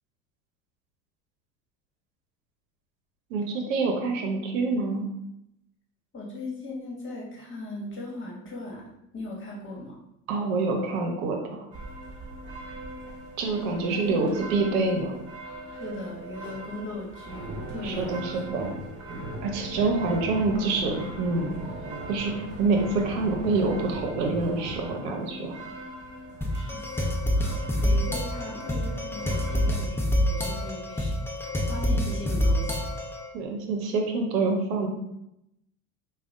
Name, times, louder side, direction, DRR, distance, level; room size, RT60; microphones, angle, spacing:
voice 1, 3.3-5.1 10.3-11.7 13.4-15.2 17.8-18.7 19.4-21.6 22.1-25.6 33.3-34.9, right 3 dB, 75° right, 2 dB, 0.8 m, -26 dB
voice 2, 6.1-10.0 13.5-14.4 15.7-18.3 26.5-31.1 31.7-32.8, left 2 dB, 30° left, -3 dB, 1.4 m, -38 dB
sound 1, 11.7-29.8, right 2 dB, 25° right, 1.4 m, -43 dB
sound 2, 17.2-25.0, right 1 dB, 45° right, 1.0 m, -38 dB
sound 3, 26.4-33.3, equal, 5° left, 0.6 m, -27 dB
4.9 x 2.3 x 2.5 m, 0.83 s
hypercardioid pair, 80°, 41 cm